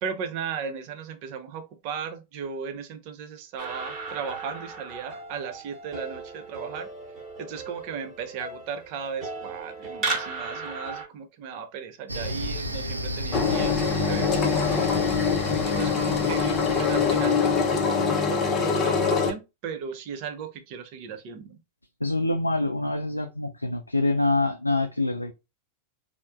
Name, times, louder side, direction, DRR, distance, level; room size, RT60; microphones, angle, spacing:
voice 1, 0.0-6.9 7.4-14.9 15.6-21.6, right 6 dB, 45° right, 0.7 m, -36 dB
sound 1, 3.6-11.1, right 3 dB, 30° right, 1.1 m, -36 dB
sound 2, 12.1-17.9, equal, 85° right, 0.5 m, -34 dB
Engine, 13.3-19.3, left 5 dB, 30° left, 0.6 m, -23 dB
voice 2, 22.0-25.3, left 2 dB, 85° left, 0.3 m, -25 dB
4.2 x 2.1 x 2.4 m
figure-of-eight pair, 90°, 0 cm